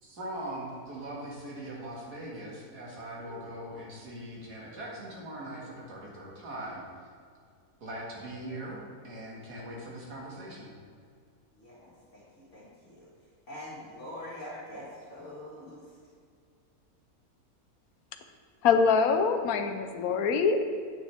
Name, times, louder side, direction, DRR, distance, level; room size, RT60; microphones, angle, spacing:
voice 1, 0.0-6.8 7.8-10.7, right 1 dB, 85° right, -4 dB, 2.5 m, -41 dB
voice 2, 3.2-3.5 11.5-13.1 13.5-16.0, left 1 dB, 50° left, -8 dB, 2.1 m, -44 dB
voice 3, 18.6-20.6, left 5 dB, 70° left, 7 dB, 1.1 m, -24 dB
8.9 x 8.8 x 3.4 m, 2.1 s
omnidirectional pair, 1.6 m